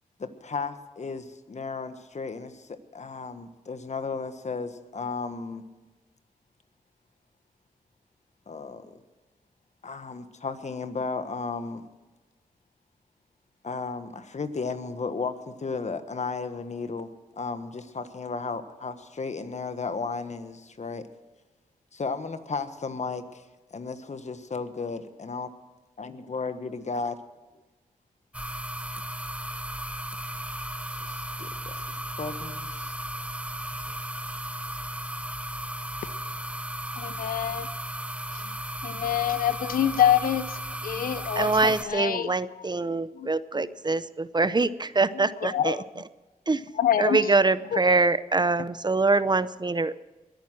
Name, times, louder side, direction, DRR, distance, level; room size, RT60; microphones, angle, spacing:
voice 1, 0.2-5.6 8.5-9.0 9.8-11.8 13.6-17.1 17.4-21.0 21.9-23.4 23.7-25.5 26.0-27.2 31.1-31.8 32.2-32.9, left 4 dB, 55° left, 10 dB, 1.4 m, -34 dB
sound 1, 28.3-41.8, right 1 dB, 10° right, 1.2 m, -35 dB
voice 2, 36.9-37.7 38.3-38.5 38.8-42.7 43.1-43.7 45.1-45.8 46.7-47.3 47.7-48.0, left 10 dB, 85° left, 14 dB, 0.6 m, -27 dB
voice 3, 41.4-45.8 46.5-46.6 47.0-49.9, right 3 dB, 30° right, 16 dB, 0.7 m, -24 dB
21.5 x 9.2 x 6.2 m, 1.2 s
cardioid pair, 55°, 14 cm